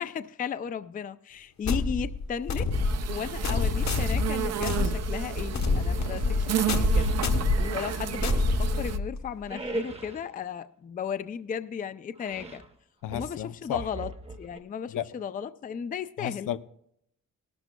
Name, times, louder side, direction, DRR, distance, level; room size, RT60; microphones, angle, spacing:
voice 1, 0.0-2.7 3.1-12.6 13.1-14.1 14.4-16.5, left 7 dB, 30° left, 12 dB, 0.4 m, -35 dB
sound 1, 1.6-9.3, left 4 dB, 60° left, 1.2 m, -28 dB
sound 2, 2.7-9.0, right 7 dB, 55° right, 0.6 m, -31 dB
sound 3, 6.9-7.3 7.8-9.0 9.5-10.3 12.2-12.7 13.1-14.6, right 2 dB, 20° right, 0.9 m, -39 dB
voice 2, 13.0-13.9 14.9-15.0 16.2-16.6, left 10 dB, 85° left, 12 dB, 0.6 m, -32 dB
18.5 x 12.0 x 2.2 m, 0.72 s
wide cardioid pair, 130°, 31 cm